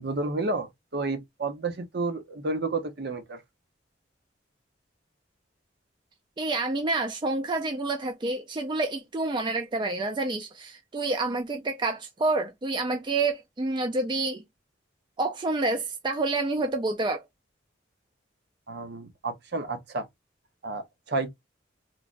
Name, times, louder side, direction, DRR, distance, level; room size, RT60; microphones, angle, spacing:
voice 1, 0.0-3.4 18.7-20.1 20.6-21.3, right 3 dB, 60° right, 0.7 m, -31 dB
voice 2, 6.4-14.4 15.2-17.2, right 2 dB, 25° right, 0.3 m, -28 dB
3.2 x 2.1 x 2.4 m
head